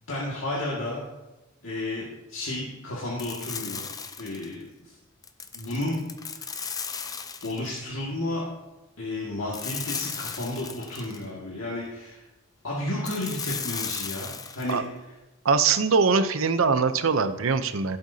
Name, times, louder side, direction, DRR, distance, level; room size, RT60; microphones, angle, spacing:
voice 1, 0.1-1.0 1.6-3.8 4.2-4.9 5.5-6.0 6.4-6.5 7.4-8.5 9.0-12.2 12.6-14.8, left 1 dB, 85° left, -6 dB, 2.0 m, -32 dB
sound 1, 3.2-4.5 5.2-7.8 9.5-11.2 13.0-14.8, left 6 dB, 20° left, 0.5 m, -36 dB
voice 2, 15.4-18.0, right 5 dB, 85° right, 11 dB, 0.6 m, -22 dB
15.5 x 7.8 x 2.8 m, 1.0 s
head